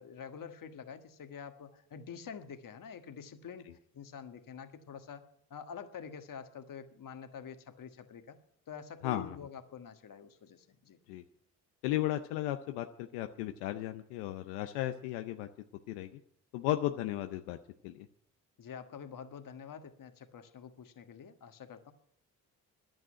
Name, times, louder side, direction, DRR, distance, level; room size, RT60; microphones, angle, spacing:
voice 1, 0.0-3.7 3.9-8.4 8.7-11.0 18.6-21.9, left 7 dB, 55° left, 8 dB, 1.6 m, -47 dB
voice 2, 9.0-9.4 11.1-11.2 11.8-15.5 15.9-16.2 16.5-17.6 17.8-18.1, left 14 dB, 90° left, 7 dB, 0.7 m, -35 dB
11.0 x 9.0 x 9.9 m, 0.69 s
supercardioid pair, 55°, 39 cm